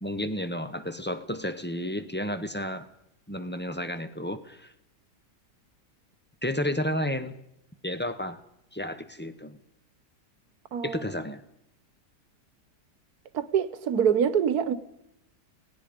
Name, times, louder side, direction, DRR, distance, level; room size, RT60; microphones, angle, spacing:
voice 1, 0.0-2.9 3.3-4.7 6.4-7.4 7.8-8.4 8.7-9.6 10.8-11.4, left 1 dB, 10° left, 0.5 m, -32 dB
voice 2, 10.7-11.0 13.3-14.7, right 8 dB, 65° right, 1.5 m, -25 dB
30.0 x 18.0 x 5.2 m
omnidirectional pair, 1.8 m